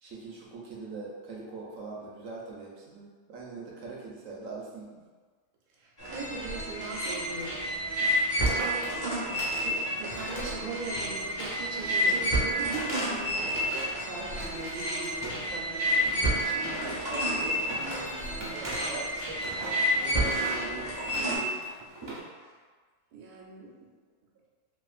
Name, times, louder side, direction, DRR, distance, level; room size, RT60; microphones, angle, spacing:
voice 1, 0.0-5.0 11.8-12.4 14.0-21.6, right 3 dB, 65° right, -4 dB, 0.8 m, -42 dB
voice 2, 5.8-7.8 8.4-13.8 22.4-22.5 23.1-23.7, right 4 dB, 90° right, -1 dB, 1.1 m, -40 dB
sound 1, 6.0-21.4, equal, 20° left, 0.9 m, -30 dB
sound 2, 7.4-7.6 7.9-8.0 8.3-9.7 10.1-10.7 10.9-14.0 14.3-15.6 15.9-22.2, right 1 dB, 35° right, 0.4 m, -39 dB
3.4 x 2.5 x 2.4 m, 1.5 s
omnidirectional pair, 1.6 m